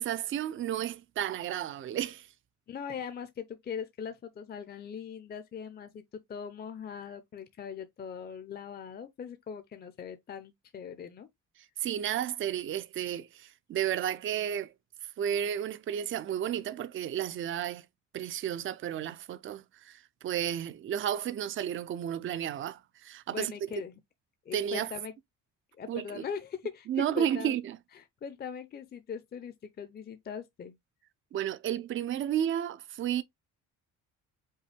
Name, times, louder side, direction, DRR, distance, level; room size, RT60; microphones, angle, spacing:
voice 1, 0.0-2.3 11.8-14.7 15.2-17.8 18.1-23.5 24.5-24.9 25.9-26.2 26.9-27.8 31.3-33.2, right 10 dB, 40° right, 0.5 m, -32 dB
voice 2, 2.7-11.3 23.3-24.0 24.5-25.1 25.8-27.6 27.9-30.8, left 7 dB, 30° left, 0.6 m, -41 dB
5.4 x 2.2 x 3.4 m
cardioid pair, 115°, 33 cm